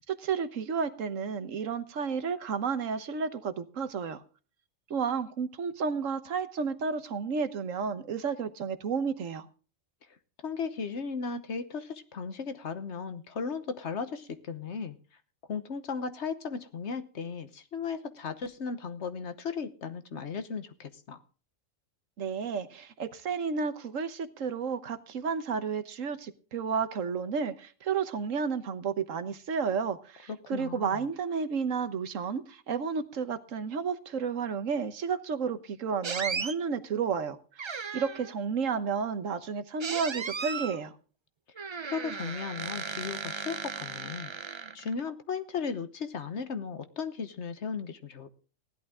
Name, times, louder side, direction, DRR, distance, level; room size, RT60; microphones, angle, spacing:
voice 1, 0.0-4.2 4.9-9.5 22.2-40.9, right 6 dB, 75° right, 1.4 m, -32 dB
voice 2, 10.4-15.0 15.5-21.2 30.4-31.0 41.8-44.3 44.7-48.3, left 5 dB, 60° left, 1.3 m, -36 dB
sound 1, 36.0-36.6 37.6-38.3 39.8-40.8 41.6-45.0, right 5 dB, 45° right, 0.3 m, -36 dB
16.0 x 11.5 x 3.6 m
omnidirectional pair, 1.3 m